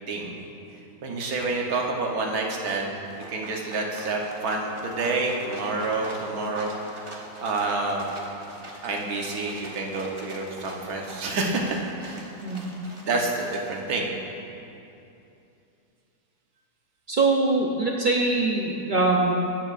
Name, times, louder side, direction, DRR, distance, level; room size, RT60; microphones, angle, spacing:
voice 1, 0.1-0.4 1.0-2.9 3.3-8.1 8.8-12.2 13.1-14.1, right 3 dB, 70° right, 0 dB, 1.5 m, -28 dB
sound 1, 3.0-13.8, right 1 dB, 25° right, 0.9 m, -43 dB
voice 2, 17.1-19.3, right 3 dB, 45° right, -2 dB, 0.6 m, -23 dB
17.0 x 7.4 x 2.5 m, 2.8 s
omnidirectional pair, 1.7 m